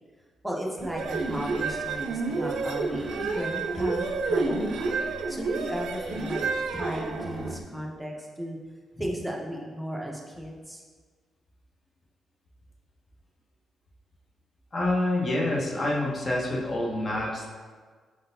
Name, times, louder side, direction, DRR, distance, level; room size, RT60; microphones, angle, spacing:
voice 1, 0.4-4.9 5.3-6.4 6.7-8.6 8.9-10.8, equal, ahead, -2 dB, 0.7 m, -35 dB
sound 1, 0.8-7.6, right 3 dB, 85° right, 0.5 m, -29 dB
voice 2, 14.7-17.5, left 1 dB, 35° left, -2 dB, 0.9 m, -27 dB
4.8 x 3.7 x 2.6 m, 1.5 s
cardioid pair, 110°, 0 cm